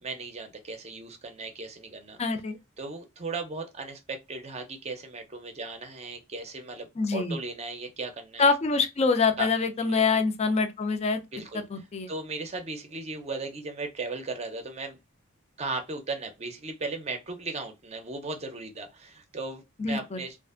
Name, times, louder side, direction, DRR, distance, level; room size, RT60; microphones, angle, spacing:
voice 1, 0.0-2.2 2.8-8.4 9.4-9.5 9.8-10.0 11.3-11.6 12.1-15.0 15.6-20.4, right 3 dB, 30° right, 0.5 m, -36 dB
voice 2, 2.2-2.6 7.0-7.4 8.4-11.2 11.7-12.1 19.8-20.2, left 4 dB, 30° left, 0.4 m, -25 dB
2.5 x 2.4 x 2.4 m
head